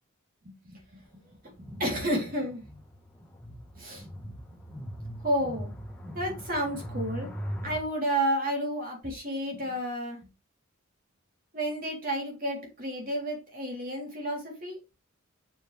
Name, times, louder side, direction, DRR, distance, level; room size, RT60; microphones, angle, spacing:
voice 1, 1.4-2.6 3.7-4.1 4.5-4.6 5.2-5.7 6.1-7.3 7.6-10.2 11.5-14.8, right 1 dB, 40° right, -1 dB, 3.7 m, -31 dB
sound 1, 1.6-7.8, equal, 5° left, 1.4 m, -40 dB
7.7 x 6.8 x 3.5 m, 0.29 s
head